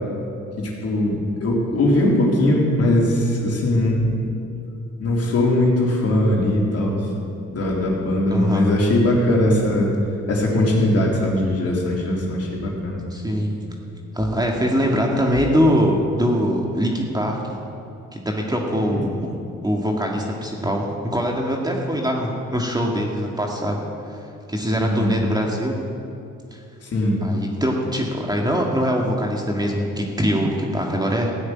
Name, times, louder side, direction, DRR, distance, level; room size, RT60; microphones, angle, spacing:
voice 1, 0.6-4.2 5.0-7.0 7.5-9.9 10.3-13.0 18.7-19.0 24.8-25.2 26.8-27.2, left 1 dB, 55° left, -3 dB, 3.8 m, -20 dB
voice 2, 8.3-8.7 13.1-13.5 14.1-17.6 18.1-19.1 19.6-23.8 24.5-25.8 26.5-26.6 27.2-31.3, equal, 15° right, 0 dB, 2.0 m, -22 dB
16.0 x 6.5 x 9.6 m, 2.6 s
cardioid pair, 90°, 30 cm